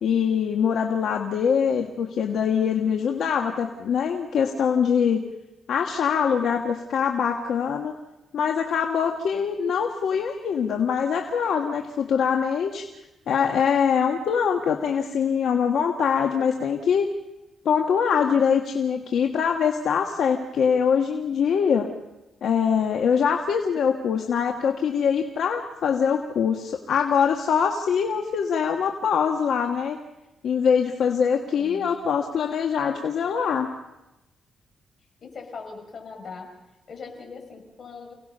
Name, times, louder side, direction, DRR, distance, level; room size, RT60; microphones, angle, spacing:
voice 1, 0.0-5.2 5.7-7.9 8.3-12.8 13.3-17.1 17.6-21.9 22.4-30.0 30.4-33.7, left 7 dB, 75° left, 3 dB, 1.7 m, -23 dB
voice 2, 31.5-31.9 35.2-36.5 36.9-38.1, left 4 dB, 50° left, 2 dB, 6.0 m, -40 dB
29.5 x 18.0 x 5.6 m, 0.97 s
cardioid pair, 110°, 0 cm